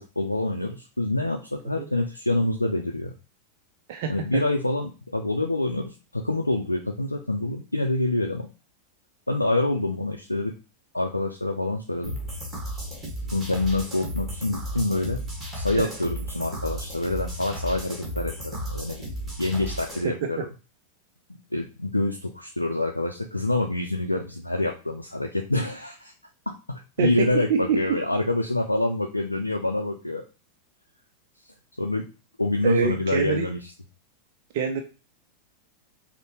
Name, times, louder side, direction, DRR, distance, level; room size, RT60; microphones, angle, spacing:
voice 1, 0.0-3.1 4.1-8.5 9.3-10.5 10.9-12.2 13.3-15.2 15.5-19.0 19.4-20.5 21.5-26.1 26.7-30.2 31.8-32.0 32.4-33.6, left 2 dB, 85° left, 2 dB, 0.4 m, -26 dB
sound 1, 12.0-20.0, right 1 dB, 10° right, 1.5 m, -34 dB
voice 2, 27.0-28.0 32.6-33.5 34.5-34.8, right 7 dB, 50° right, 4 dB, 0.5 m, -25 dB
5.4 x 2.1 x 2.9 m, 0.32 s
figure-of-eight pair, 90°, 0 cm